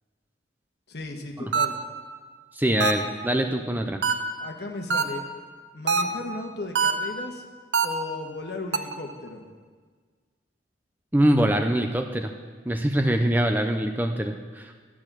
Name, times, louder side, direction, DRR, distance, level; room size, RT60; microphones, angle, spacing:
voice 1, 0.9-1.8 4.4-5.3 5.7-7.4 7.8-9.4, left 2 dB, 60° left, 3 dB, 1.3 m, -36 dB
sound 1, 1.5-2.0 2.8-3.3 4.0-4.5 4.9-5.4 5.9-6.4 6.8-7.3 7.7-8.2 8.7-9.1, right 4 dB, 70° right, 0.8 m, -25 dB
voice 2, 2.5-4.0 11.1-12.3 12.7-14.8, right 1 dB, 10° right, 5 dB, 0.5 m, -24 dB
12.5 x 8.5 x 6.1 m, 1.5 s
head